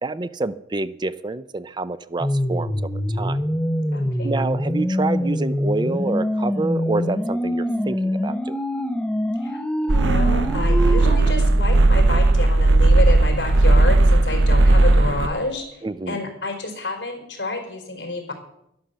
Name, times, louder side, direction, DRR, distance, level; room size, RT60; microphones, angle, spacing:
voice 1, 0.0-2.7 3.1-3.4 4.2-8.6 15.8-16.2, right 3 dB, 25° right, 14 dB, 0.5 m, -27 dB
sound 1, 2.2-11.2, equal, 5° left, 0.8 m, -24 dB
voice 2, 3.9-4.4 9.4-9.6 9.9-18.3, left 2 dB, 65° left, 3 dB, 4.3 m, -29 dB
sound 2, 9.9-15.3, right 2 dB, 80° right, 0.7 m, -16 dB
11.5 x 11.5 x 6.9 m, 0.80 s
head